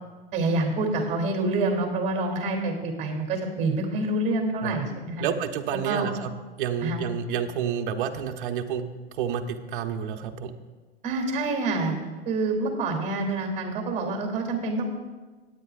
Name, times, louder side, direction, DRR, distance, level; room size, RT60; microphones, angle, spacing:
voice 1, 0.3-5.2 5.8-6.1 6.8-7.0 11.0-12.0 12.2-15.0, right 2 dB, 20° right, 2 dB, 2.5 m, -27 dB
voice 2, 5.2-6.3 6.6-8.8 9.1-10.5, right 8 dB, 50° right, 5 dB, 0.9 m, -29 dB
18.0 x 9.2 x 2.4 m, 1.3 s
supercardioid pair, 160°, 33 cm